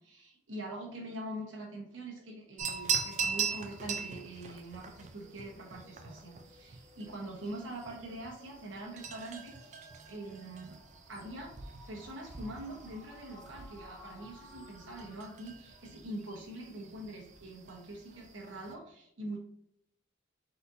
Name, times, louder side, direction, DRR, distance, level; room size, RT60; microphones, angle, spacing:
voice 1, 0.0-10.8 11.1-19.4, right 1 dB, 60° right, 0 dB, 1.2 m, -44 dB
sound 1, 2.4-15.4, left 1 dB, 5° left, 1.3 m, -59 dB
sound 2, 2.6-18.7, right 6 dB, 35° right, 0.4 m, -41 dB
4.1 x 4.0 x 2.7 m, 0.74 s
head